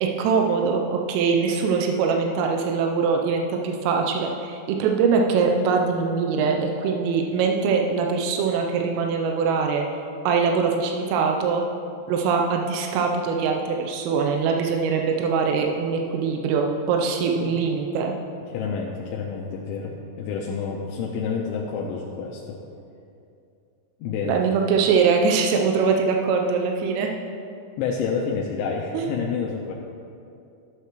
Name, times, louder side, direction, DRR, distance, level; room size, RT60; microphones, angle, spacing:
voice 1, 0.0-9.9 10.3-11.6 12.1-18.1 24.3-27.1 28.9-29.0, right 5 dB, 85° right, 2 dB, 3.3 m, -22 dB
voice 2, 18.5-22.6 24.0-24.4 27.8-29.7, left 5 dB, 80° left, -2 dB, 2.9 m, -29 dB
14.5 x 8.2 x 3.0 m, 2.6 s
omnidirectional pair, 5.7 m